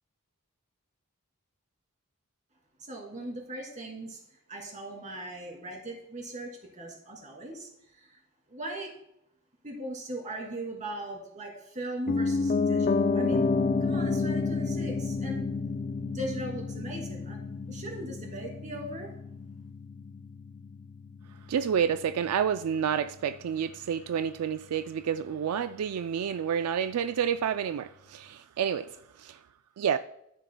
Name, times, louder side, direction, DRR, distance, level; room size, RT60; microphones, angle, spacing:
voice 1, 2.8-8.2 8.5-8.9 9.6-13.5 13.8-15.5 16.1-17.4 17.7-19.1, right 1 dB, 35° right, 2.7 m, -39 dB
Piano, 12.1-22.1 22.4-22.5, left 4 dB, 35° left, 0.3 m, -30 dB
voice 2, 21.5-29.4 29.8-30.0, right 8 dB, 85° right, 0.3 m, -29 dB
13.0 x 10.0 x 2.2 m
head